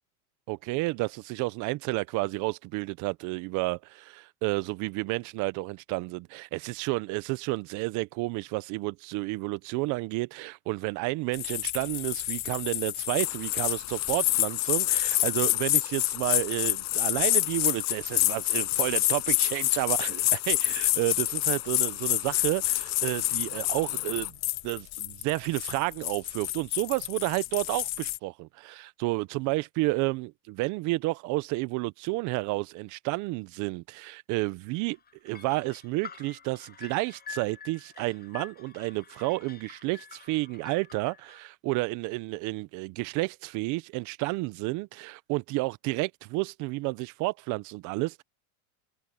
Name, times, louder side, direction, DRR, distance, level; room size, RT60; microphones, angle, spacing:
voice 1, 0.5-24.3 24.6-35.0 35.2-48.2, right 22 dB, 45° right, 0.6 m, -31 dB
sound 1, 11.3-28.2, left 18 dB, 40° left, 0.8 m, -28 dB
sound 2, 13.1-24.3, left 32 dB, 60° left, 6.4 m, -49 dB
sound 3, 34.7-41.4, left 7 dB, 20° left, 7.8 m, -47 dB
supercardioid pair, 145°, 43 cm